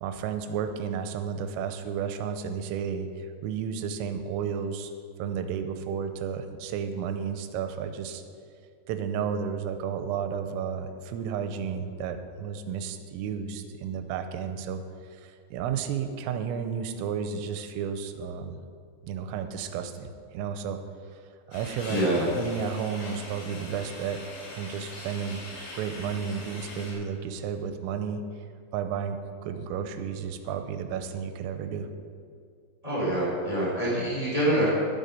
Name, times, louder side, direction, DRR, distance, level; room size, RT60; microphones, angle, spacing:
voice 1, 0.0-4.9 5.2-8.2 8.9-14.8 15.1-18.6 19.0-20.8 21.1-21.2 21.5-22.0 22.3-24.2 24.5-25.4 25.7-28.2 28.7-31.9, right 7 dB, 85° right, 8 dB, 3.3 m, -32 dB
sound 1, 21.5-26.9, left 2 dB, 70° left, 4.9 m, -42 dB
voice 2, 21.9-22.2 32.8-34.7, right 1 dB, 10° right, -6 dB, 2.2 m, -25 dB
11.5 x 9.4 x 5.3 m, 2.2 s
omnidirectional pair, 5.9 m